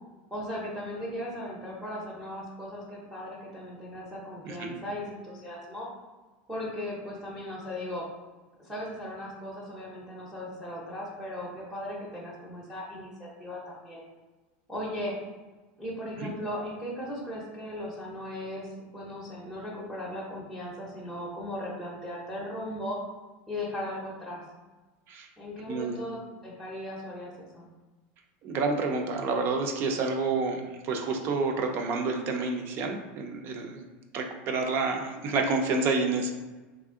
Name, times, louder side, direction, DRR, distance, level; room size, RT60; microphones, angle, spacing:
voice 1, 0.3-5.9 6.5-8.0 8.6-14.0 14.7-15.1 15.8-23.0 23.5-24.4 25.4-27.6, left 1 dB, 5° right, -5 dB, 0.7 m, -37 dB
voice 2, 4.5-4.8 16.2-16.3 25.1-25.3 25.7-26.0 28.4-33.8 34.1-36.3, right 3 dB, 40° right, 3 dB, 0.6 m, -29 dB
3.4 x 2.5 x 3.6 m, 1.2 s
supercardioid pair, 145°, 6 cm